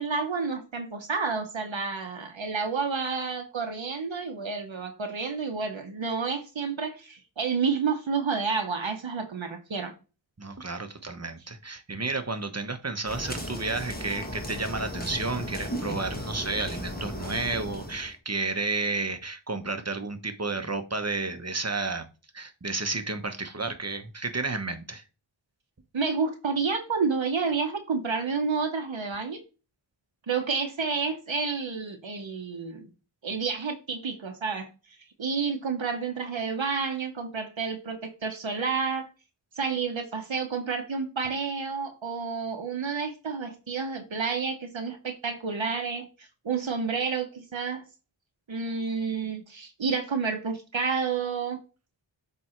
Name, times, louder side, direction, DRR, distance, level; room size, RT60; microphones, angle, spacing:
voice 1, 0.0-9.9 25.9-29.4 30.3-32.9 33.2-34.7 35.2-39.1 39.6-47.8 48.5-51.6, right 5 dB, 75° right, 1.1 m, -30 dB
voice 2, 10.4-22.1 22.3-25.0, right 3 dB, 35° right, 1.1 m, -31 dB
sound 1, 13.1-18.1, equal, 20° left, 1.5 m, -36 dB
7.6 x 3.5 x 4.5 m
wide cardioid pair, 45°, 47 cm